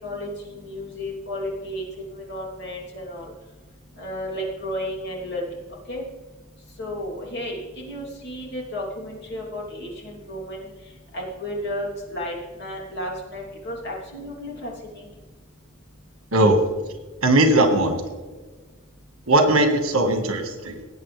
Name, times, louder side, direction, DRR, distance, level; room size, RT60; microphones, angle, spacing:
voice 1, 0.0-3.3 4.0-5.5 5.9-6.0 6.8-7.6 7.9-10.6 11.1-15.0, equal, 50° left, -3 dB, 3.2 m, -33 dB
voice 2, 17.2-18.0 19.3-20.8, right 1 dB, 75° right, 5 dB, 1.7 m, -18 dB
18.5 x 8.8 x 3.4 m, 1.3 s
head